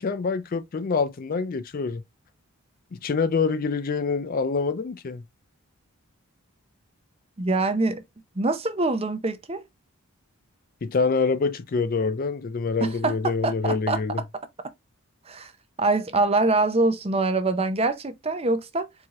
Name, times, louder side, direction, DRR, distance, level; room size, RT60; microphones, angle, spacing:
voice 1, 0.0-2.0 2.9-5.2 10.8-14.2, left 4 dB, 40° left, 0.4 m, -26 dB
voice 2, 7.4-8.0 8.4-9.6 12.8-14.0 15.3-15.5 15.8-18.9, right 2 dB, 25° right, 0.6 m, -24 dB
4.7 x 2.8 x 3.6 m
head